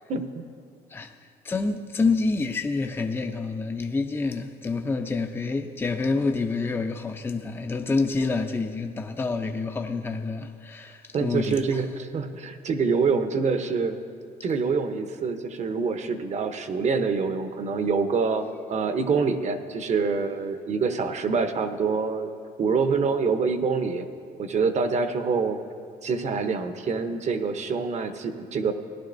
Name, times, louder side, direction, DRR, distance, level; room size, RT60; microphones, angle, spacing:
voice 1, 0.1-0.4 11.1-14.0 14.4-18.4 18.7-22.3 22.6-24.1 24.4-25.6 26.0-28.7, right 5 dB, 40° right, 0.8 m, -26 dB
voice 2, 1.4-11.8, left 3 dB, 15° left, 0.5 m, -27 dB
17.0 x 11.0 x 2.6 m
cardioid pair, 110°, 17 cm